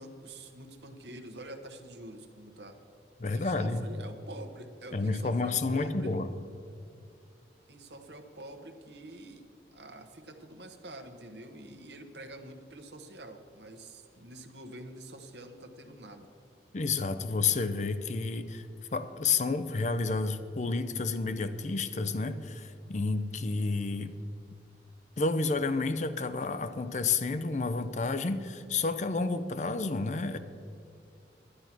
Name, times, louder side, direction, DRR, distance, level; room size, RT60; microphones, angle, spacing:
voice 1, 0.0-2.8 3.3-6.2 7.7-16.3, right 1 dB, 75° right, 6 dB, 1.1 m, -47 dB
voice 2, 3.2-3.8 4.9-6.3 16.7-18.7 18.9-24.1 25.2-30.4, left 3 dB, 40° left, 11 dB, 0.5 m, -30 dB
11.0 x 9.7 x 5.9 m, 2.5 s
head